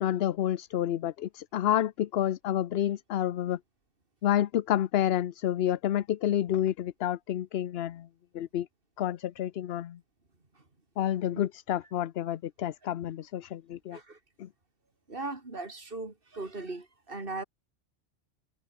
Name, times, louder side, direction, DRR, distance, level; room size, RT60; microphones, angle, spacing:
voice 1, 0.0-3.6 4.2-8.1 8.3-8.7 9.0-10.0 11.0-14.0 14.4-14.5, left 11 dB, 65° left, 0.8 m, -29 dB
voice 2, 15.1-17.4, right 3 dB, 50° right, 3.8 m, -38 dB
omnidirectional pair, 1.2 m